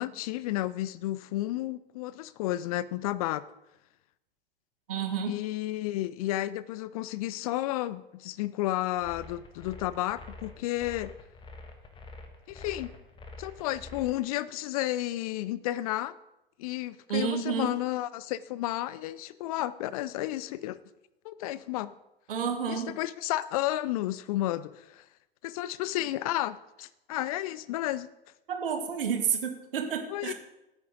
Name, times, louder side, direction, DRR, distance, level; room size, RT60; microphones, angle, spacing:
voice 1, 0.0-3.4 5.2-11.1 12.5-12.9 13.4-16.1 16.6-20.8 21.2-21.9 22.7-25.0 25.4-28.1 30.1-30.3, left 15 dB, 40° left, 18 dB, 0.4 m, -32 dB
voice 2, 4.9-5.3 17.1-17.8 22.3-22.9 28.5-30.3, right 7 dB, 65° right, 6 dB, 1.8 m, -30 dB
sound 1, 9.0-14.2, left 2 dB, 15° left, 1.4 m, -46 dB
16.0 x 8.9 x 3.8 m, 0.93 s
figure-of-eight pair, 90°, 30 cm